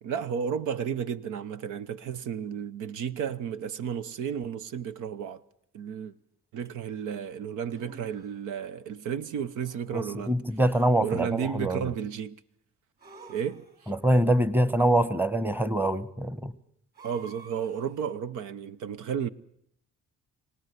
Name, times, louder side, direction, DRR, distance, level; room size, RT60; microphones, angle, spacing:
voice 1, 0.0-5.4 5.7-6.1 6.5-10.4 11.0-12.4 13.3-13.9 17.0-19.3, right 7 dB, 85° right, 0.9 m, -33 dB
sound 1, 6.6-6.7 7.7-8.4 9.6-10.4 13.0-14.0 16.9-18.0, right 3 dB, 30° right, 4.8 m, -50 dB
voice 2, 9.9-11.9 13.9-16.5, right 1 dB, 5° right, 1.1 m, -24 dB
25.0 x 18.0 x 8.2 m
cardioid pair, 90°, 30 cm